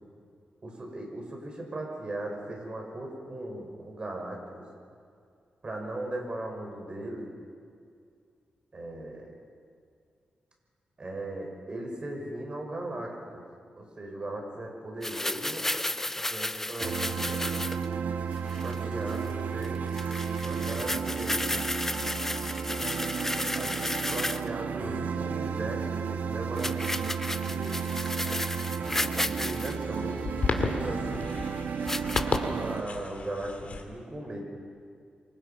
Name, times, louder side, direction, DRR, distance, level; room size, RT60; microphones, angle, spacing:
voice 1, 0.6-4.7 5.6-7.3 8.7-9.3 11.0-13.4 13.8-15.6 16.3-17.3 18.4-19.9 20.4-21.5 23.5-27.9 29.0-31.4 32.6-34.4, right 1 dB, 35° right, 1 dB, 6.0 m, -38 dB
sound 1, 15.0-17.9 18.4-18.8 19.1-19.3 19.6-19.7 19.9-24.5 26.6-29.8 30.6-30.7 31.9-32.4, left 1 dB, 10° left, 0.6 m, -33 dB
sound 2, 16.8-32.8, right 6 dB, 75° right, 1.4 m, -33 dB
sound 3, 29.1-33.8, left 4 dB, 50° left, 2.7 m, -34 dB
28.0 x 25.0 x 5.8 m, 2.3 s
cardioid pair, 105°, 3 cm